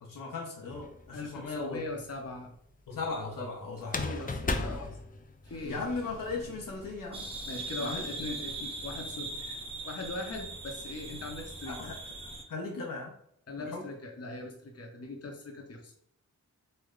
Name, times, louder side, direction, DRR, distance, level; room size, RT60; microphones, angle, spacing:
voice 1, 0.0-1.8 2.9-4.3 4.6-4.9 5.6-7.3 7.8-8.0 11.7-11.9 12.5-13.1 13.6-13.9, left 3 dB, 75° left, 0 dB, 0.7 m, -37 dB
sound 1, 0.7-1.4 3.8-5.8, left 3 dB, 25° left, 0.4 m, -35 dB
voice 2, 1.1-2.5 4.0-5.0 5.5-5.8 7.5-11.8 13.5-15.9, left 2 dB, 45° left, 2 dB, 0.8 m, -40 dB
Water / Sink (filling or washing), 5.4-7.2, right 1 dB, 85° right, 0.9 m, -50 dB
sound 2, 7.1-12.4, right 2 dB, 15° right, 0.8 m, -40 dB
3.2 x 2.1 x 3.7 m, 0.69 s
cardioid pair, 50°, 33 cm